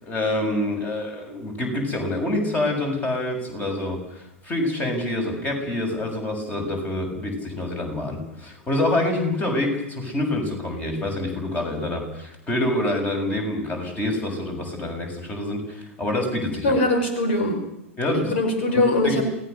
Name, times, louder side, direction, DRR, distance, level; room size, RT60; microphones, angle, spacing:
voice 1, 0.0-16.7 18.0-18.3 18.7-19.2, left 1 dB, 20° left, 4 dB, 6.9 m, -26 dB
voice 2, 16.6-17.6 18.3-19.2, left 1 dB, 55° left, 6 dB, 5.4 m, -21 dB
28.5 x 18.5 x 6.9 m, 0.83 s
figure-of-eight pair, 95°, 7 cm